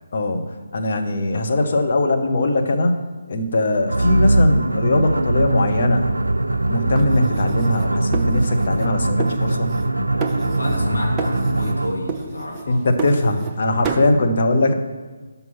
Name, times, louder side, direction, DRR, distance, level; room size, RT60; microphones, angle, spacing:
voice 1, 0.1-6.0 6.7-9.7 12.7-14.7, left 2 dB, 45° left, 4 dB, 0.9 m, -20 dB
sound 1, 3.9-12.1, right 2 dB, 75° right, 0.3 m, -21 dB
sound 2, 7.0-8.9 9.2-9.9 10.2-10.9 11.2-11.8 12.1-13.6 13.8-14.1, right 4 dB, 15° right, 0.5 m, -30 dB
voice 2, 10.5-12.8, left 1 dB, 70° left, -2 dB, 2.0 m, -28 dB
6.2 x 5.4 x 5.9 m, 1.3 s
figure-of-eight pair, 145°, 0 cm